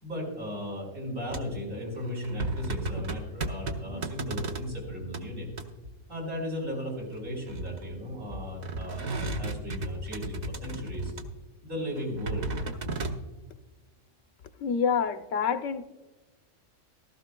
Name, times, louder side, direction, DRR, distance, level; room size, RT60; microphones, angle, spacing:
voice 1, 0.0-5.5 6.1-11.1 11.6-12.5, left 1 dB, 85° right, -3 dB, 4.5 m, -36 dB
sound 1, 1.3-1.6 2.0-5.2 5.5-5.9 7.0-8.0 8.3-11.4 12.0-13.2, right 2 dB, 40° right, 0.7 m, -35 dB
voice 2, 14.6-15.8, left 6 dB, 80° left, 9 dB, 1.1 m, -27 dB
15.5 x 13.5 x 2.2 m, 1.2 s
omnidirectional pair, 1.3 m